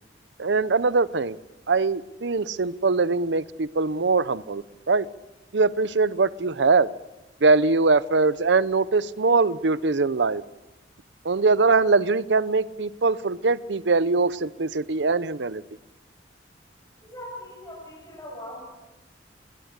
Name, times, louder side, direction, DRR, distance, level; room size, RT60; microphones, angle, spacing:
voice 1, 0.4-1.4 1.7-5.1 5.5-6.9 7.4-10.4 11.2-15.6, right 3 dB, 70° right, 0.7 m, -22 dB
voice 2, 17.0-18.6, left 1 dB, 20° left, 6.8 m, -40 dB
21.0 x 20.5 x 8.2 m
head